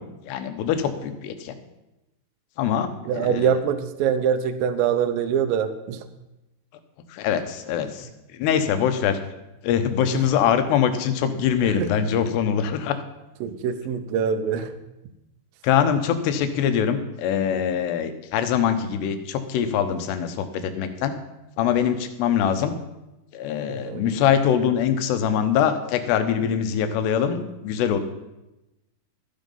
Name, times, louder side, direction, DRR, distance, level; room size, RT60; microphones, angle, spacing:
voice 1, 0.2-1.6 2.6-2.9 3.1-3.6 7.1-9.2 9.6-13.0 15.6-21.1 21.6-22.8 23.3-28.0, left 8 dB, 80° left, 9 dB, 3.0 m, -23 dB
voice 2, 3.1-6.0 11.6-11.9 13.4-14.7 23.7-24.1, right 7 dB, 75° right, 9 dB, 2.3 m, -24 dB
13.5 x 9.2 x 5.4 m, 0.96 s
omnidirectional pair, 4.8 m